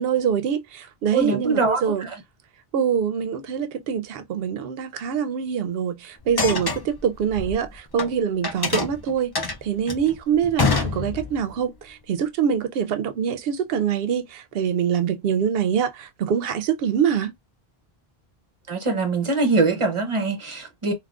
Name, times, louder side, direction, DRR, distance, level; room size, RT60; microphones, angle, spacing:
voice 1, 0.0-2.1 2.7-17.3, right 8 dB, 70° right, 0.7 m, -24 dB
voice 2, 1.1-2.2 18.7-20.9, right 3 dB, 35° right, 0.7 m, -23 dB
sound 1, 6.2-8.1 8.4-11.5, left 4 dB, 40° left, 0.3 m, -26 dB
3.5 x 2.3 x 2.3 m
omnidirectional pair, 1.1 m